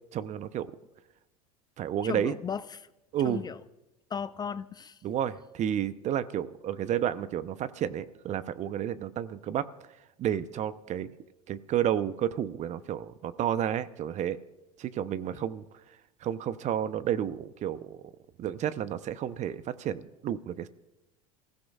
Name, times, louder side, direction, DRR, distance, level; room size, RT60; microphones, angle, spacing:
voice 1, 0.1-0.7 1.8-2.4 3.1-3.5 5.0-9.7 10.2-11.1 11.5-14.4 14.8-15.7 16.2-18.0 18.4-20.7, right 10 dB, 40° right, 15 dB, 0.8 m, -31 dB
voice 2, 2.0-2.9 3.2-3.6 4.1-5.0 15.4-15.5, left 6 dB, 20° left, 15 dB, 0.4 m, -36 dB
28.0 x 16.0 x 2.4 m, 0.96 s
hypercardioid pair, 80°, 19 cm